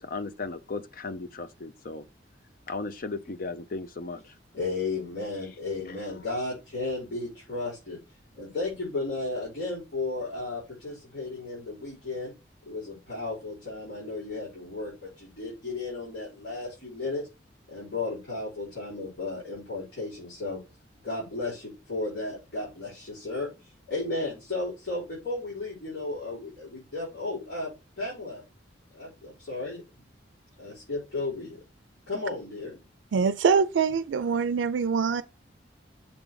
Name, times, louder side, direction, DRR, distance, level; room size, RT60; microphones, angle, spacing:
voice 1, 0.0-2.0 2.7-4.2 5.9-6.0, left 3 dB, 50° left, 0.6 m, -36 dB
voice 2, 4.5-8.0 8.3-12.3 12.6-17.3 17.7-20.6 21.0-27.7 28.0-28.4 28.9-30.0 30.6-31.6 32.1-32.8, left 3 dB, 80° left, 4.6 m, -34 dB
voice 3, 33.1-35.2, right 5 dB, 85° right, 0.4 m, -24 dB
7.2 x 3.7 x 4.8 m
head